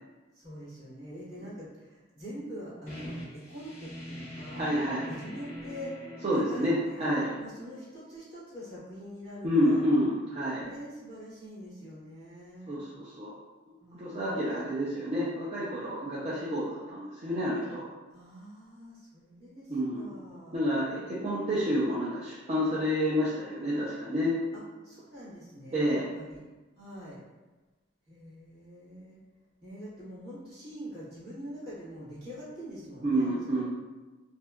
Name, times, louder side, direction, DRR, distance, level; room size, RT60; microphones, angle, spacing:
voice 1, 0.3-4.7 5.1-6.0 6.3-7.1 7.4-9.8 10.6-12.8 13.8-14.8 18.1-20.6 24.5-26.4 26.7-27.2 28.1-29.2 29.6-33.6, equal, 50° right, -10 dB, 1.2 m, -44 dB
sound 1, 2.9-8.3, equal, 35° left, 0.8 m, -44 dB
voice 2, 4.6-5.1 6.2-7.3 9.4-10.6 12.7-13.3 14.0-17.8 19.7-20.0 20.5-24.4 25.7-26.0 33.0-33.6, equal, 30° right, -8 dB, 0.4 m, -29 dB
2.7 x 2.2 x 2.2 m, 1.2 s
head